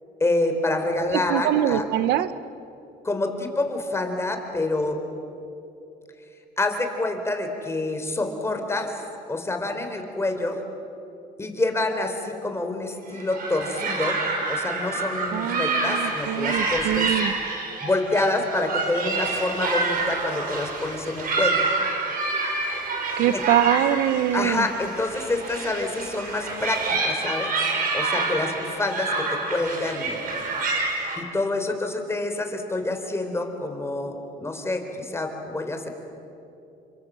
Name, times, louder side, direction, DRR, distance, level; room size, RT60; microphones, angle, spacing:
voice 1, 0.2-1.9 3.0-5.0 6.6-9.0 9.3-10.6 11.4-14.2 14.5-17.1 17.8-21.6 23.3-23.4 24.3-27.5 27.9-30.2 31.2-35.9, left 2 dB, 15° left, 5 dB, 3.9 m, -27 dB
voice 2, 1.3-2.3 15.3-17.3 23.2-24.7, right 11 dB, 80° right, 13 dB, 1.0 m, -23 dB
sound 1, 13.1-31.2, right 3 dB, 55° right, 5.4 m, -28 dB
29.0 x 25.0 x 7.5 m, 2.8 s
cardioid pair, 110°, 17 cm